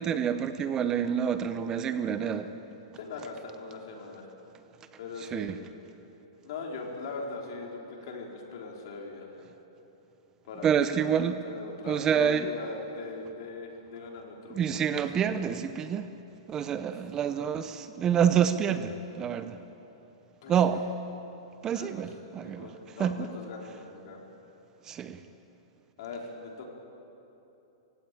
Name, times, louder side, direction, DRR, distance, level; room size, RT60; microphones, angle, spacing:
voice 1, 0.0-2.5 5.3-5.6 10.6-11.4 11.8-12.5 14.5-16.1 16.5-19.6 20.5-20.9 21.6-22.7 23.0-23.3 24.8-25.2, right 8 dB, 20° right, 10 dB, 0.7 m, -27 dB
voice 2, 2.9-4.3 5.0-5.5 6.4-9.4 10.4-14.8 20.4-20.5 21.7-22.0 22.3-24.3 26.0-26.7, left 4 dB, 60° left, 0 dB, 4.1 m, -40 dB
19.0 x 16.0 x 9.0 m, 2.9 s
hypercardioid pair, 150°, 3 cm